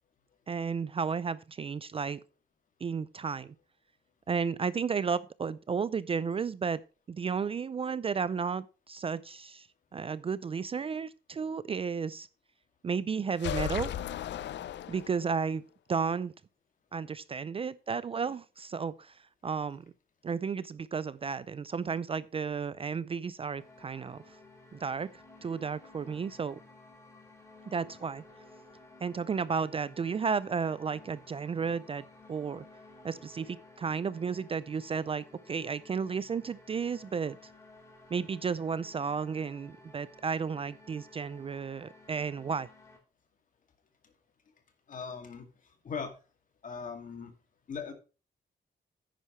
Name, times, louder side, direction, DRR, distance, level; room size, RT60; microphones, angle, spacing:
voice 1, 0.5-2.2 2.8-3.5 4.3-6.8 7.1-9.7 9.9-12.3 12.8-13.9 14.9-15.6 15.9-16.3 16.9-19.8 20.2-24.2 24.7-25.1 25.4-26.6 27.7-28.2 29.0-32.6 33.0-37.5 38.1-42.7, right 6 dB, 30° right, 0.4 m, -33 dB
sound 1, 13.4-15.4, left 11 dB, 90° left, 0.5 m, -36 dB
sound 2, 23.6-43.0, left 2 dB, 15° left, 3.4 m, -55 dB
voice 2, 44.9-45.5 45.8-46.1 46.6-47.3 47.7-47.9, left 6 dB, 45° left, 2.3 m, -39 dB
10.0 x 9.5 x 3.1 m
wide cardioid pair, 175°, 18 cm